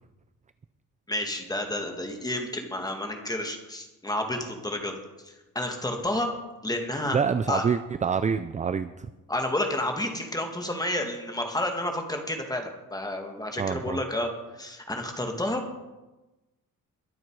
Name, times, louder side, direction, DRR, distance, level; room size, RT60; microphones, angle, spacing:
voice 1, 1.1-5.0 5.2-6.3 6.6-7.2 7.5-7.6 9.3-15.6, left 1 dB, 10° left, 3 dB, 2.0 m, -30 dB
voice 2, 7.1-9.1 13.6-14.0, right 6 dB, 20° right, 12 dB, 0.4 m, -26 dB
22.5 x 7.6 x 4.7 m, 1.1 s
cardioid pair, 140°, 35 cm